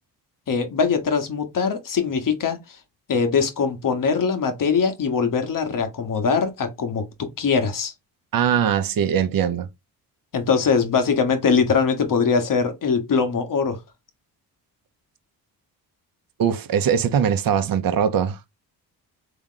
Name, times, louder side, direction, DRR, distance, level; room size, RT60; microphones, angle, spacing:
voice 1, 0.5-2.6 3.1-7.9 10.3-13.8, left 5 dB, 50° left, 1.2 m, -22 dB
voice 2, 8.3-9.7 16.4-18.4, right 8 dB, 55° right, 0.8 m, -21 dB
3.5 x 3.0 x 3.8 m
supercardioid pair, 60°, 41 cm